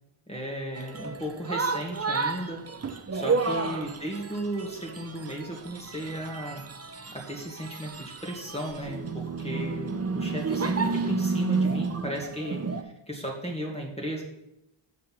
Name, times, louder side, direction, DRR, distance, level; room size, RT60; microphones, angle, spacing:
voice 1, 0.3-6.6 7.1-14.2, equal, 10° left, -1 dB, 2.0 m, -35 dB
sound 1, 0.8-12.8, right 4 dB, 30° right, 0.8 m, -31 dB
7.4 x 5.9 x 6.0 m, 0.87 s
cardioid pair, 65°, 50 cm